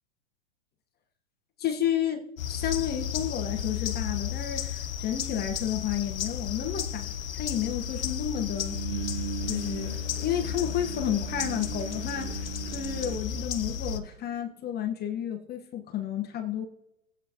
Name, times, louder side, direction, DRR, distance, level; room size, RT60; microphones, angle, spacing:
voice 1, 1.6-8.8 9.5-10.0 10.2-12.4 12.7-16.6, left 9 dB, 25° left, 5 dB, 1.3 m, -31 dB
sound 1, 2.4-14.0, left 8 dB, 75° left, 1.1 m, -33 dB
sound 2, 6.6-6.7 8.5-13.2, right 14 dB, 55° right, 1.4 m, -39 dB
19.0 x 8.3 x 3.0 m, 0.88 s
hypercardioid pair, 120°, 41 cm